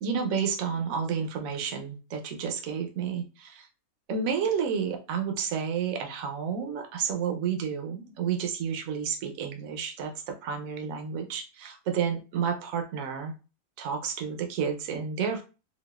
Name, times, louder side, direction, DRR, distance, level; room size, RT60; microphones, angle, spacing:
voice 1, 0.0-3.7 4.1-13.3 13.8-15.4, right 7 dB, 70° right, 4 dB, 1.0 m, -31 dB
3.9 x 2.4 x 2.3 m, 0.32 s
omnidirectional pair, 1.6 m